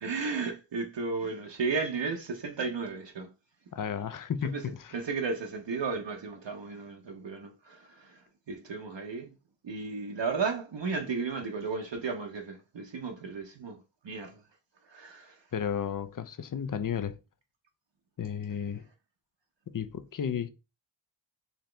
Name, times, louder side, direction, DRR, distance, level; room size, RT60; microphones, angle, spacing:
voice 1, 0.0-3.3 4.5-4.6 4.9-8.2 8.5-9.3 9.6-13.8 14.0-14.4 14.9-15.4, right 4 dB, 65° right, 0.7 m, -34 dB
voice 2, 3.7-5.0 15.5-17.2 18.2-18.8 19.7-20.5, left 7 dB, 45° left, 0.5 m, -33 dB
4.0 x 2.8 x 3.2 m
wide cardioid pair, 55°, 48 cm